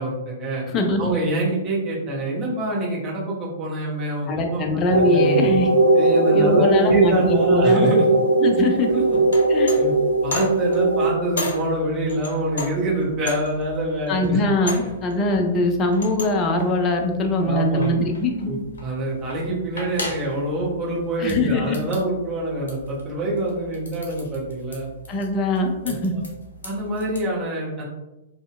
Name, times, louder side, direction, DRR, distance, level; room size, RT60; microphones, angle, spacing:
voice 1, 0.0-0.6 1.0-4.6 4.9-5.6 5.9-8.2 8.9-9.0 9.7-9.9 10.2-14.4 17.4-18.0 18.4-24.9 25.8-26.2 26.6-27.8, right 1 dB, 30° right, -4 dB, 0.8 m, -25 dB
voice 2, 0.7-1.1 4.3-5.7 6.3-7.9 8.4-8.9 9.5-9.7 14.1-18.5 21.2-21.8 25.1-26.2, left 2 dB, 25° left, 3 dB, 0.3 m, -22 dB
sound 1, 4.9-11.1, right 2 dB, 80° right, 0.4 m, -19 dB
sound 2, 8.8-27.3, left 2 dB, 70° left, 0.6 m, -37 dB
2.6 x 2.0 x 2.3 m, 0.99 s
figure-of-eight pair, 110°, 0 cm